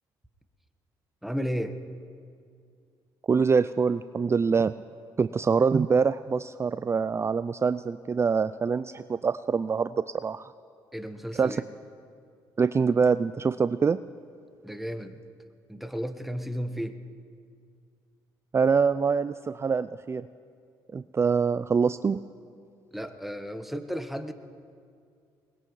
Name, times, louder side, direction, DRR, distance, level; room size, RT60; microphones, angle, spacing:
voice 1, 1.2-1.8 10.9-11.6 14.6-15.2 15.7-17.0 22.9-24.3, equal, ahead, 7 dB, 1.3 m, -33 dB
voice 2, 3.3-4.7 5.2-10.5 11.3-11.6 12.6-14.0 18.5-20.3 20.9-22.2, right 5 dB, 30° right, 13 dB, 0.4 m, -25 dB
22.0 x 20.5 x 3.2 m, 2.2 s
supercardioid pair, 60°, 9 cm